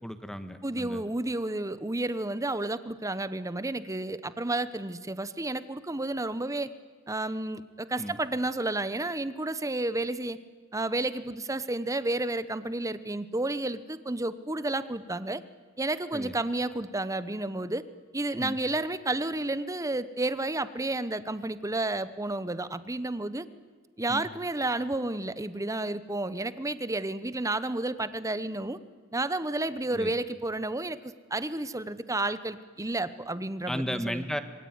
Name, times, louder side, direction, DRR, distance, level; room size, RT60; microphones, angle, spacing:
voice 1, 0.0-1.1 8.0-8.2 16.1-16.3 18.4-18.6 24.1-24.3 29.9-30.1 33.7-34.4, equal, 5° left, 10 dB, 1.5 m, -34 dB
voice 2, 0.6-6.7 7.1-10.4 10.7-15.4 15.8-17.8 18.1-23.5 24.0-28.8 29.1-34.2, right 2 dB, 15° right, 14 dB, 0.9 m, -31 dB
26.5 x 22.5 x 9.6 m, 1.5 s
head